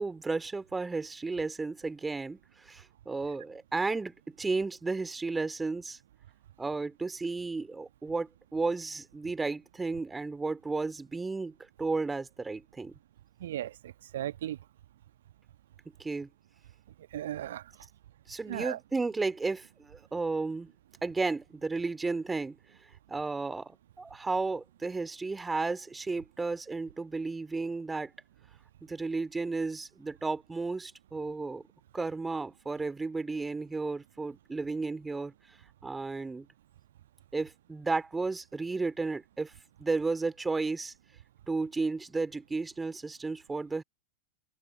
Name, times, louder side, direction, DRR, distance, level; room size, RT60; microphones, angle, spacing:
voice 1, 0.0-6.0 6.6-12.9 16.0-16.3 18.3-20.7 21.0-22.6 23.1-28.1 28.8-31.6 31.9-35.6 35.8-36.5 37.3-39.5 39.8-40.9 41.5-43.8, right 3 dB, 10° right, 2.5 m, -33 dB
voice 2, 13.4-14.6 17.1-17.7 18.5-18.8, right 12 dB, 60° right, 1.2 m, -36 dB
figure-of-eight pair, 90°, 0 cm